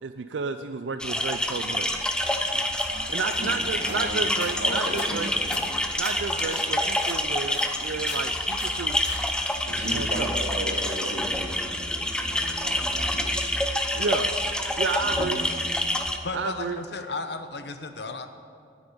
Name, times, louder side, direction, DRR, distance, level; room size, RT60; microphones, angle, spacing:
voice 1, 0.0-1.9 3.1-5.3 6.0-9.0 9.9-10.3 14.0-14.3 14.8-15.4 16.3-16.8, right 5 dB, 85° right, 9 dB, 0.5 m, -31 dB
sound 1, 1.0-16.2, left 1 dB, 5° left, 0.7 m, -27 dB
sound 2, 2.2-9.9, left 4 dB, 80° left, 1.7 m, -43 dB
voice 2, 3.4-4.3 4.6-5.6 6.3-6.7 9.6-13.8 15.0-15.5, equal, 70° right, -2 dB, 3.0 m, -35 dB
voice 3, 16.2-18.3, left 3 dB, 65° left, 8 dB, 0.9 m, -34 dB
9.7 x 8.9 x 9.8 m, 2.5 s
head